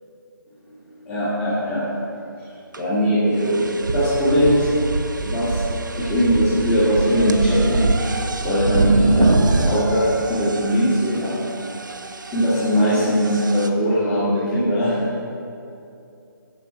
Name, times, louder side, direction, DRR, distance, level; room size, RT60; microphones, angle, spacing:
voice 1, 1.1-1.8 2.8-4.7 5.2-5.6 5.9-7.9 8.4-11.4 12.3-15.0, equal, 10° left, -13 dB, 1.8 m, -20 dB
sound 1, 2.7-2.8 3.4-13.7, right 3 dB, 60° right, 0.8 m, -25 dB
7.4 x 7.4 x 7.8 m, 2.6 s
figure-of-eight pair, 150°, 12 cm